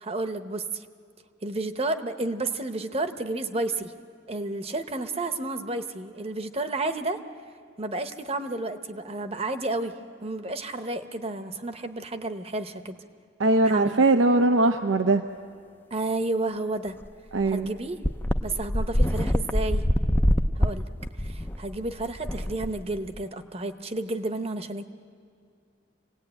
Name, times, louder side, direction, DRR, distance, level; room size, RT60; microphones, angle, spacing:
voice 1, 0.0-0.9 1.4-3.9 4.3-7.2 7.8-9.9 10.2-13.0 13.6-14.0 15.9-17.0 17.5-18.0 18.4-19.8 20.6-20.9 21.2-24.8, right 2 dB, 35° right, 9 dB, 0.9 m, -31 dB
voice 2, 13.4-15.2 17.3-17.7, right 2 dB, 85° right, 6 dB, 0.7 m, -21 dB
sound 1, 17.0-17.1 17.4-17.5 18.0-23.2, equal, 10° left, 0.5 m, -25 dB
27.0 x 18.0 x 8.9 m, 2.3 s
head